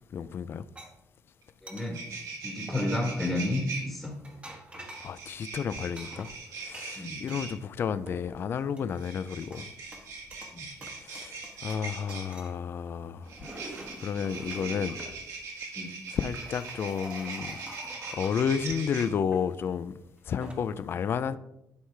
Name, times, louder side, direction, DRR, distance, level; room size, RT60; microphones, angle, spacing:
voice 1, 0.1-0.7 5.0-6.3 6.6-9.7 11.0-13.3 13.6-15.0 16.1-17.6 18.1-19.9 20.3-21.4, left 7 dB, 40° left, 0.3 m, -31 dB
sound 1, 0.8-0.9 1.7-1.9 2.7-3.2 4.0-5.2 6.0-7.4 7.8-8.4 8.8-9.6 9.9-10.6 10.8-11.8 12.1-12.6 13.1-15.2 15.9-19.4 20.2-20.5, right 1 dB, 20° right, 1.1 m, -46 dB
sound 2, 1.4-1.5 1.7-3.8 4.9-7.5 8.9-12.3 13.3-19.0, right 4 dB, 60° right, 1.7 m, -40 dB
voice 2, 1.6-2.0 2.4-4.2 7.0-7.2 10.5-10.7 15.7-15.9 17.2-17.5, left 1 dB, 5° left, 1.4 m, -31 dB
11.0 x 4.8 x 3.3 m
cardioid pair, 155°, 6 cm